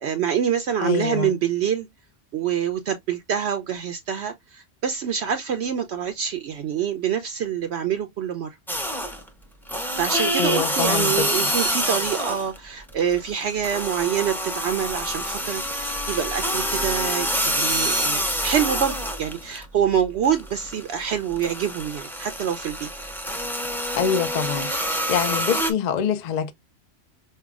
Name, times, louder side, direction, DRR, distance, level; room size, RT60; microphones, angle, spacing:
voice 1, 0.0-1.9 2.3-8.6 10.0-22.9, right 8 dB, 65° right, 0.8 m, -26 dB
voice 2, 0.8-1.4 10.4-11.3 24.0-24.7 25.1-26.5, left 7 dB, 55° left, 0.5 m, -25 dB
sound 1, 8.7-9.3 9.7-12.6 12.9-19.6 20.0-25.7, equal, ahead, 0.6 m, -26 dB
5.5 x 2.2 x 2.3 m
omnidirectional pair, 1.3 m